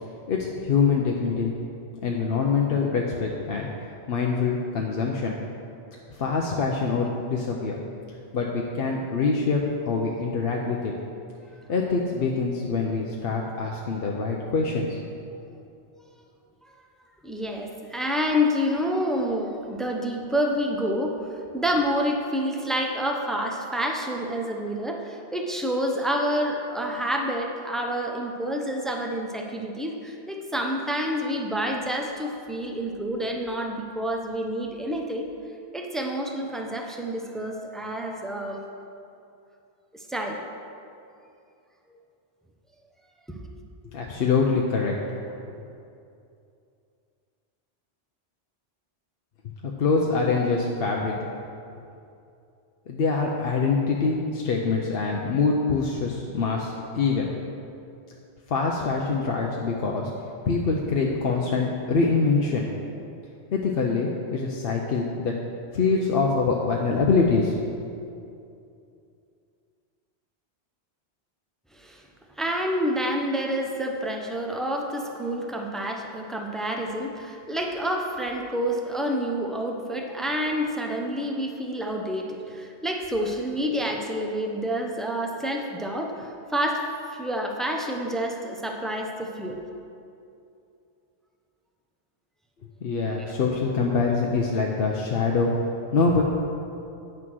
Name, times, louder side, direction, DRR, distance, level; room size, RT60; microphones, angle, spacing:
voice 1, 0.3-1.5 2.0-3.7 4.1-5.4 6.1-7.8 8.3-10.9 11.7-15.0 43.9-44.9 45.2-45.4 49.6-51.1 52.9-57.3 58.5-60.1 60.5-62.7 63.5-65.3 65.7-67.5 92.8-95.5 95.9-96.2, left 4 dB, 65° left, -1 dB, 0.9 m, -24 dB
voice 2, 17.2-21.2 21.5-35.3 35.7-38.6 39.9-40.4 71.7-72.0 72.4-89.6 93.2-93.4, equal, ahead, 1 dB, 0.6 m, -28 dB
9.2 x 6.1 x 6.1 m, 2.6 s
omnidirectional pair, 1.1 m